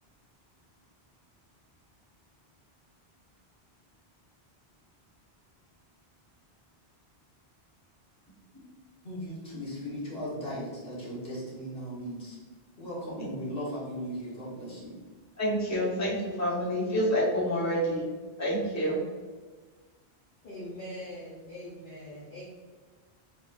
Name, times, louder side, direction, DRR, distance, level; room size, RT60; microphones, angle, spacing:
voice 1, 9.0-12.4 12.8-14.9, equal, 70° left, -7 dB, 1.7 m, -37 dB
voice 2, 15.4-18.0 18.4-19.0, equal, 15° left, -7 dB, 1.2 m, -28 dB
voice 3, 20.4-22.4, left 1 dB, 55° left, -9 dB, 1.2 m, -42 dB
4.8 x 3.6 x 2.6 m, 1.4 s
omnidirectional pair, 1.1 m